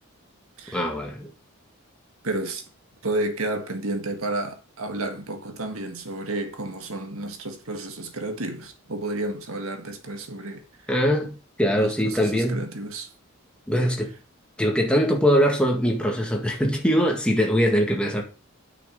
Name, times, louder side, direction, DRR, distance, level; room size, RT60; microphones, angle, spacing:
voice 1, 0.7-1.3 10.9-12.7 13.7-14.1 14.6-18.2, equal, 5° left, 1.8 m, -22 dB
voice 2, 2.2-2.7 3.0-10.6 11.8-13.1, right 2 dB, 75° right, 1.7 m, -31 dB
9.0 x 6.3 x 5.2 m
head